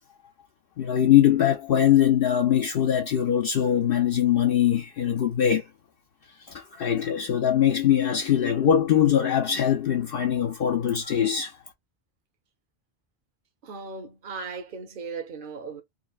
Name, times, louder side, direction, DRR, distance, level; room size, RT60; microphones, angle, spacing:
voice 1, 0.8-5.6 6.4-11.6, left 10 dB, 65° left, 0.8 m, -22 dB
voice 2, 13.6-15.8, right 4 dB, 55° right, 0.9 m, -37 dB
3.9 x 2.1 x 2.3 m
omnidirectional pair, 1.1 m